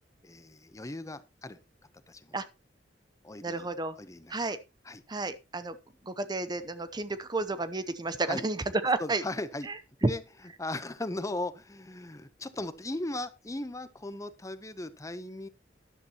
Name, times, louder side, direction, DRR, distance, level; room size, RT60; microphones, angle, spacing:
voice 1, 0.2-1.6 2.1-2.4 3.2-3.7 4.0-4.3 4.8-5.0 8.3-8.4 9.0-9.7 10.1-10.2 10.6-15.5, left 2 dB, 20° left, 13 dB, 0.8 m, -37 dB
voice 2, 3.4-3.9 4.3-4.6 5.1-5.8 6.0-9.2 9.7-9.8, right 3 dB, 25° right, 13 dB, 0.7 m, -32 dB
12.5 x 11.0 x 2.9 m, 0.26 s
head